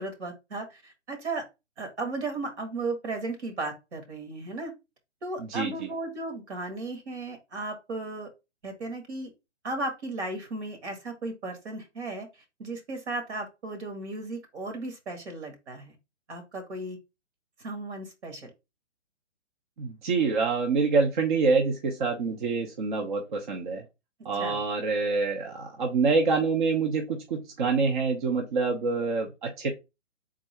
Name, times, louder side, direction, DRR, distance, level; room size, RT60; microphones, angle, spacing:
voice 1, 0.0-1.4 1.8-4.7 5.2-8.3 8.6-9.3 9.6-12.3 12.6-16.0 16.3-17.0 17.6-18.5 24.4-24.6, right 2 dB, 65° right, 4 dB, 1.7 m, -35 dB
voice 2, 5.4-5.9 19.8-23.8 24.2-29.7, right 4 dB, 40° right, 2 dB, 0.8 m, -26 dB
3.7 x 2.6 x 4.3 m, 0.25 s
hypercardioid pair, 150°, 36 cm